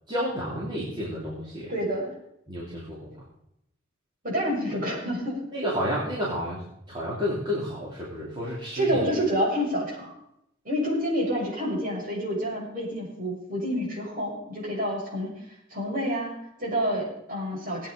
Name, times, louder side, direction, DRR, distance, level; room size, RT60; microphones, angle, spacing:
voice 1, 0.1-1.7 2.5-3.2 5.5-6.6 6.9-9.0, equal, 20° right, -7 dB, 3.4 m, -31 dB
voice 2, 1.7-2.1 4.2-5.4 8.7-10.1 10.6-15.3 15.7-17.9, equal, 40° right, -4 dB, 7.3 m, -28 dB
19.0 x 9.2 x 5.4 m, 0.79 s
head